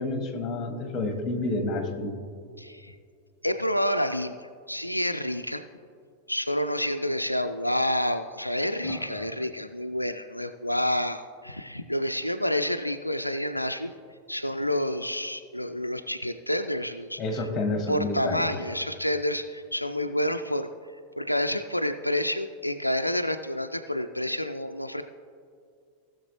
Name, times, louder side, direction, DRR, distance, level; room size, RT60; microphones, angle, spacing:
voice 1, 0.0-2.1 8.8-9.2 17.2-18.5, left 2 dB, 25° left, 5 dB, 1.6 m, -29 dB
voice 2, 2.6-3.0 3.4-5.6 6.3-13.9 14.3-17.5 17.9-20.7 21.2-25.0, left 1 dB, 85° left, 8 dB, 0.3 m, -29 dB
18.5 x 6.6 x 3.0 m, 2.2 s
figure-of-eight pair, 90°, 0 cm